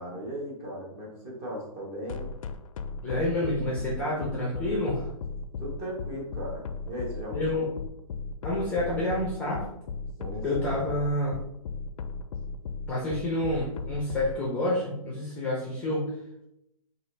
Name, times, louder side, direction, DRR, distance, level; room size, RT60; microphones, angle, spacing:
voice 1, 0.0-2.3 5.6-7.7 10.2-10.8, equal, 25° right, -2 dB, 1.0 m, -37 dB
sound 1, 2.1-14.3, left 4 dB, 65° left, 0.4 m, -35 dB
voice 2, 3.0-5.0 7.3-7.7 8.4-9.6 10.4-11.3 12.9-16.1, left 1 dB, 5° left, -5 dB, 0.5 m, -28 dB
4.7 x 2.4 x 3.2 m, 0.83 s
hypercardioid pair, 160°, 18 cm